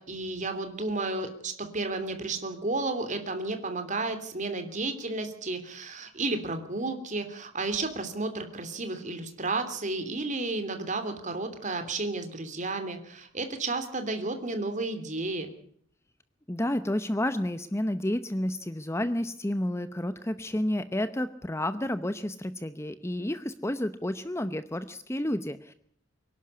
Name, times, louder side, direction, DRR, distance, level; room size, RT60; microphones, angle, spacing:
voice 1, 0.0-15.5, right 3 dB, 40° right, 8 dB, 3.0 m, -32 dB
voice 2, 16.5-25.7, left 1 dB, 15° left, 11 dB, 0.8 m, -30 dB
24.0 x 11.5 x 9.7 m, 0.63 s
head